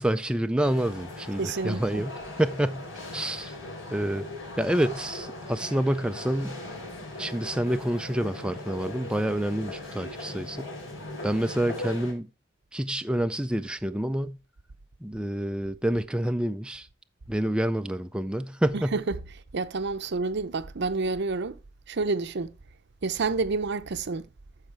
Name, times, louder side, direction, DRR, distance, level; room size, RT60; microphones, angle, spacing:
voice 1, 0.0-2.9 3.1-3.6 3.9-4.3 4.6-6.6 7.2-10.7 11.2-12.3 12.7-14.4 15.0-16.9 17.3-19.0, right 1 dB, 5° right, 0.4 m, -28 dB
sound 1, 0.6-12.1, left 2 dB, 75° left, 4.0 m, -39 dB
voice 2, 1.4-2.0 18.7-19.2 19.5-21.6 21.9-22.5 23.0-24.3, right 3 dB, 60° right, 0.7 m, -29 dB
13.5 x 4.9 x 3.3 m
head